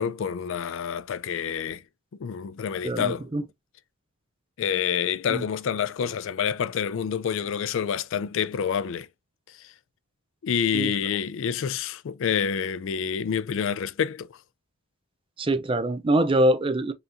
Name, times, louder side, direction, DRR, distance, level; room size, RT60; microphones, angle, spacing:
voice 1, 0.0-1.8 2.2-3.3 4.6-9.1 9.6-9.7 10.4-14.3, left 7 dB, 55° left, 0.3 m, -28 dB
voice 2, 2.8-3.4 5.3-5.4 10.7-10.9 15.4-16.9, right 1 dB, 25° right, 0.4 m, -24 dB
5.6 x 2.8 x 2.6 m
head